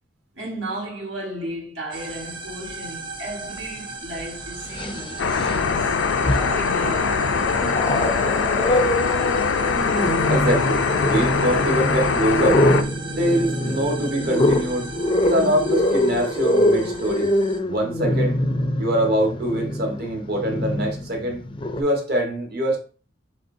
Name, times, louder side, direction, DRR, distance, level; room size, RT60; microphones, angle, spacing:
voice 1, 0.3-6.0 6.5-8.0, right 1 dB, 90° right, 1.7 m, -34 dB
sound 1, 1.9-17.6, right 3 dB, 25° right, 0.7 m, -37 dB
Growling, 3.6-3.7 4.6-5.7 6.1-6.8 7.2-21.8, left 1 dB, 25° left, 0.4 m, -24 dB
sound 2, 5.2-12.8, left 5 dB, 85° left, 0.4 m, -22 dB
voice 2, 10.3-12.6 13.1-14.9 15.2-17.3 17.6-18.4 18.8-21.4 21.7-22.8, right 1 dB, 55° right, 1.2 m, -24 dB
5.3 x 3.4 x 2.6 m
head